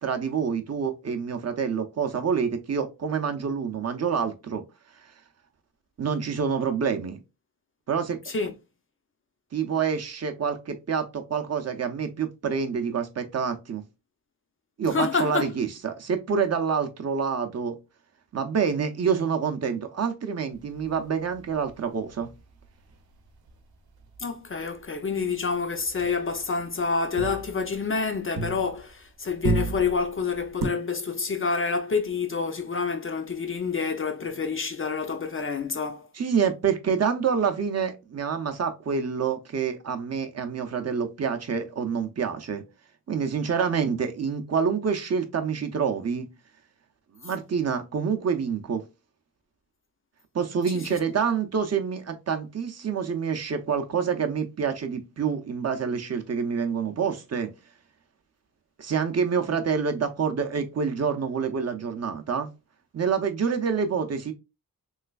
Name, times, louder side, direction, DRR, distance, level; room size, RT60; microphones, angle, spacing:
voice 1, 0.0-4.6 6.0-7.2 7.9-8.2 9.5-13.8 14.8-17.8 18.3-22.3 36.1-42.6 43.1-46.3 47.2-48.8 50.3-57.5 58.8-62.5 62.9-64.3, right 6 dB, 45° right, 0.5 m, -27 dB
voice 2, 14.8-15.4 24.2-36.1 50.7-51.0, left 5 dB, 35° left, 0.4 m, -28 dB
sound 1, 20.5-24.2 24.5-24.9 25.1-29.0 29.3-30.7, right 3 dB, 80° right, 0.7 m, -34 dB
3.2 x 3.1 x 2.2 m
wide cardioid pair, 175°, 36 cm